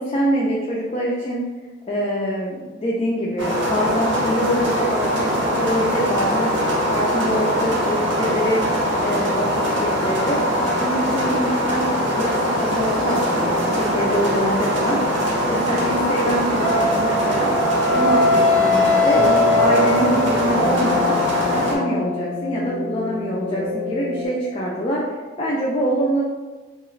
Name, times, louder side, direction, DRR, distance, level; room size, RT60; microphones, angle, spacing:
voice 1, 0.0-1.4 1.9-6.5 6.9-8.6 9.0-10.4 10.8-15.0 15.4-17.5 17.9-19.2 19.6-21.2 21.5-26.2, equal, 25° left, -5 dB, 0.3 m, -24 dB
sound 1, 3.4-21.8, equal, 60° right, 0.6 m, -22 dB
Wind instrument woodwind instrument, 16.6-20.6, left 2 dB, 15° right, 0.6 m, -20 dB
sound 2, 19.1-24.3, left 2 dB, 70° left, 0.6 m, -25 dB
2.8 x 2.4 x 3.1 m, 1.3 s
head